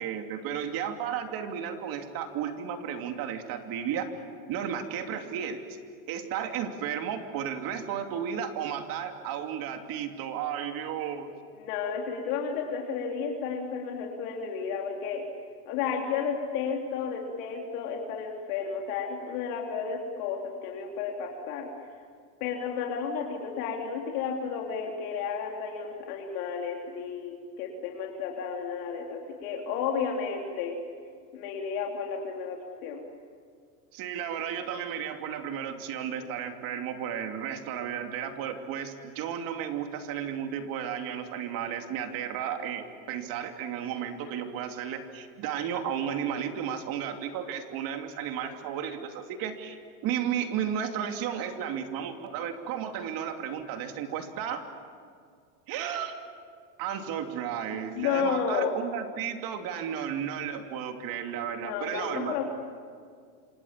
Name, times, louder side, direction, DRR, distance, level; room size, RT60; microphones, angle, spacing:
voice 1, 0.0-4.1 4.5-5.6 6.1-11.3 33.9-54.6 55.7-56.1 56.8-62.3, right 8 dB, 45° right, 5 dB, 3.0 m, -33 dB
voice 2, 11.6-15.2 15.7-21.7 22.4-30.8 31.3-33.1 57.9-58.8 61.6-62.5, left 6 dB, 60° left, 0 dB, 3.6 m, -32 dB
27.0 x 27.0 x 7.5 m, 2.1 s
supercardioid pair, 135°, 48 cm